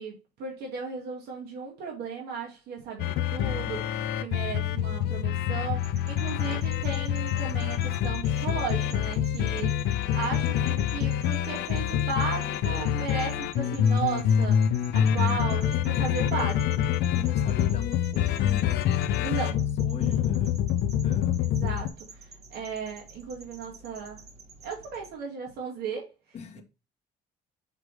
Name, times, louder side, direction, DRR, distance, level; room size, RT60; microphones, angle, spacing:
voice 1, 0.0-9.7 10.1-16.8 19.2-19.6 21.4-22.2 22.5-24.2 24.6-26.1, right 5 dB, 70° right, 2.0 m, -35 dB
sound 1, 3.0-21.9, left 10 dB, 75° left, 0.6 m, -26 dB
sound 2, 5.8-25.1, right 3 dB, 40° right, 1.4 m, -50 dB
voice 2, 17.1-19.3 19.8-20.5 21.0-21.4 26.3-26.6, left 7 dB, 40° left, 1.2 m, -42 dB
6.6 x 3.2 x 4.7 m
cardioid pair, 110°, 17 cm